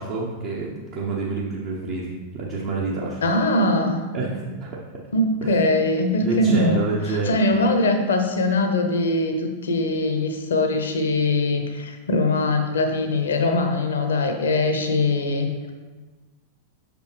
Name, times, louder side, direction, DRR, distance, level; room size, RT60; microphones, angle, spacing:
voice 1, 0.0-3.2 4.1-4.7 5.4-5.7 6.2-7.3, right 3 dB, 50° right, -4 dB, 0.9 m, -27 dB
voice 2, 3.2-4.0 5.1-15.5, left 2 dB, 65° left, 5 dB, 0.8 m, -22 dB
6.5 x 5.1 x 3.3 m, 1.3 s
figure-of-eight pair, 90°, 0 cm